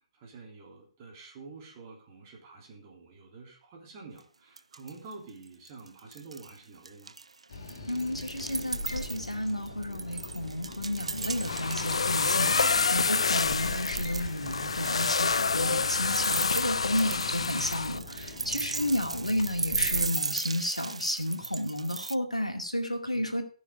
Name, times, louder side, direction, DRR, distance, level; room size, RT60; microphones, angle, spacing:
voice 1, 0.1-7.1 12.6-12.9 18.3-18.9 23.1-23.3, right 4 dB, 25° right, 0 dB, 3.4 m, -48 dB
sound 1, 4.2-4.3 4.6-5.1 5.4-6.6 6.9-13.1 13.5-22.2, right 4 dB, 70° right, 0.4 m, -37 dB
sound 2, 7.5-20.2, left 2 dB, 45° left, 3.3 m, -42 dB
voice 2, 7.9-23.4, left 1 dB, 85° left, 4 dB, 2.2 m, -32 dB
sound 3, 11.1-18.0, left 4 dB, 60° left, 0.5 m, -28 dB
15.5 x 6.4 x 4.8 m, 0.42 s
figure-of-eight pair, 135°, 3 cm